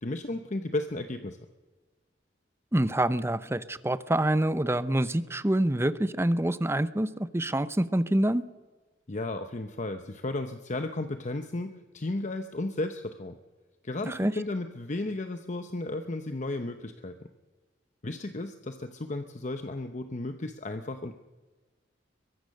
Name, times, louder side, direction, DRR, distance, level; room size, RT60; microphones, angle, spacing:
voice 1, 0.0-1.4 9.1-13.4 13.8-17.3 18.0-21.1, left 2 dB, 40° left, 7 dB, 0.9 m, -34 dB
voice 2, 2.7-8.4 14.0-14.3, right 1 dB, 15° right, 14 dB, 0.7 m, -26 dB
23.0 x 20.5 x 6.5 m, 1.3 s
head